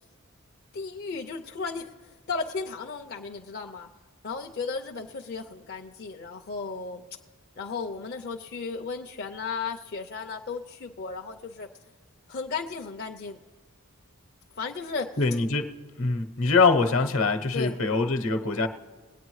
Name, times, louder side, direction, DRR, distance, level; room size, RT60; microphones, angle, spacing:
voice 1, 0.7-1.9 2.3-3.9 4.2-7.1 7.6-11.7 12.3-13.4 14.6-15.2 17.5-17.8, left 4 dB, 45° left, 2 dB, 0.5 m, -35 dB
voice 2, 15.2-15.7 16.0-18.7, left 4 dB, 65° left, 7 dB, 0.9 m, -23 dB
21.0 x 9.0 x 3.1 m, 1.4 s
head